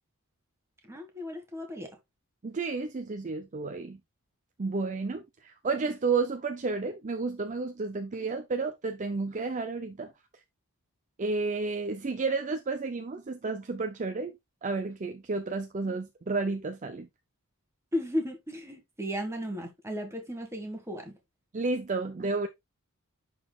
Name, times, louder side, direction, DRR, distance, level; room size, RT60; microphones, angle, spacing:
voice 1, 0.9-1.9 17.9-21.2, equal, 10° right, 1.6 m, -35 dB
voice 2, 2.4-4.0 4.6-10.1 11.2-17.1 21.5-22.5, right 3 dB, 35° right, 0.5 m, -31 dB
11.0 x 4.0 x 2.3 m
head